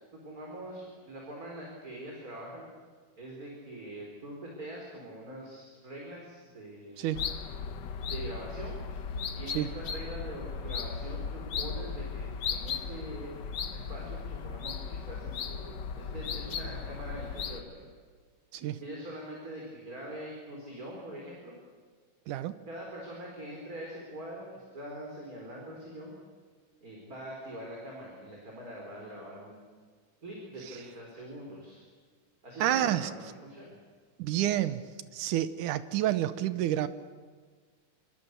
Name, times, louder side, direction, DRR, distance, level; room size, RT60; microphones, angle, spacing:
voice 1, 0.1-2.7 3.2-7.0 8.0-8.8 9.3-13.3 13.7-17.9 18.6-21.5 22.7-26.1 26.8-29.6 30.2-31.9 32.4-33.8, right 1 dB, 25° right, -2 dB, 4.6 m, -43 dB
sound 1, 7.1-17.6, left 6 dB, 70° left, 1.0 m, -36 dB
voice 2, 22.3-22.6 32.6-33.1 34.2-34.8 35.1-36.9, right 12 dB, 80° right, 13 dB, 2.4 m, -29 dB
26.5 x 25.5 x 6.8 m, 1.5 s
omnidirectional pair, 3.6 m